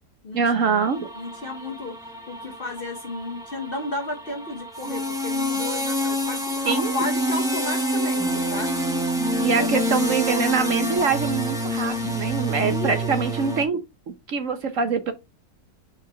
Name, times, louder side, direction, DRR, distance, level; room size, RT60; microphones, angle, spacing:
voice 1, 0.3-1.1 6.6-6.9 9.4-15.1, right 5 dB, 55° right, 1.1 m, -24 dB
sound 1, 0.6-13.6, equal, ahead, 1.1 m, -27 dB
voice 2, 1.1-2.0 2.3-8.8 9.1-9.8 12.6-13.2, left 2 dB, 40° left, 0.9 m, -33 dB
5.1 x 4.0 x 5.2 m
omnidirectional pair, 1.8 m